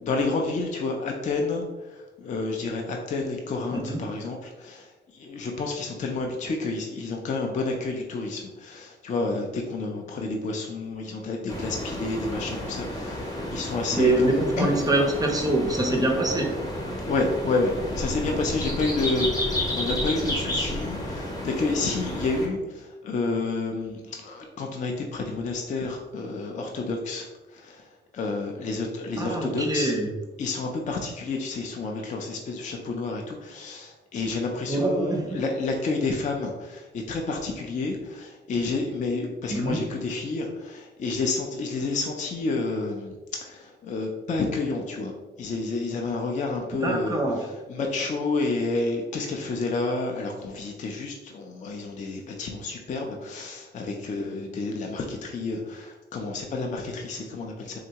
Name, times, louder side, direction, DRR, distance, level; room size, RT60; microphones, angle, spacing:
voice 1, 0.0-1.6 1.9-14.7 17.1-27.9 28.1-29.9 30.4-43.1 43.4-45.1 45.4-57.8, left 3 dB, 40° left, 1 dB, 0.4 m, -30 dB
sound 1, 11.5-22.5, left 1 dB, 20° left, 0.8 m, -31 dB
voice 2, 14.0-16.5 29.2-30.1 34.7-35.4 39.5-39.8 46.8-47.4, right 2 dB, 20° right, 1 dB, 0.5 m, -24 dB
3.6 x 2.1 x 2.8 m, 1.2 s
cardioid pair, 90°, 20 cm